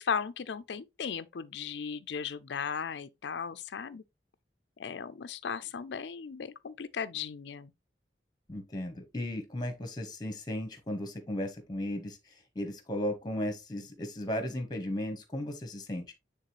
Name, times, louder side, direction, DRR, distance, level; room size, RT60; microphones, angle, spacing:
voice 1, 0.0-4.0 4.8-7.7, left 6 dB, 70° left, 0.5 m, -36 dB
voice 2, 8.5-16.1, left 1 dB, 20° left, 1.4 m, -35 dB
9.1 x 3.6 x 3.0 m
head